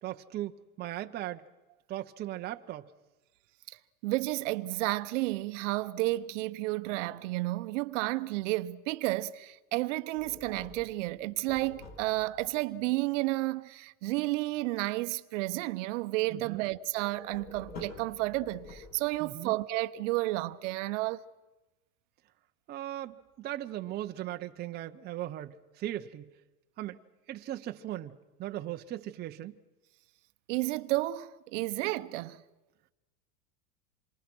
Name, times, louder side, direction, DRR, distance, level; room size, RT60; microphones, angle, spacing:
voice 1, 0.0-1.4 1.9-2.9 16.3-16.6 19.2-19.5 22.7-26.3 26.8-27.0 27.3-29.6, right 13 dB, 20° right, 0.7 m, -38 dB
voice 2, 4.0-21.2 30.5-32.4, right 19 dB, 55° right, 0.9 m, -31 dB
sound 1, 10.2-12.5 17.0-19.3, left 3 dB, 40° left, 6.3 m, -48 dB
27.5 x 23.5 x 6.1 m
supercardioid pair, 135°, 44 cm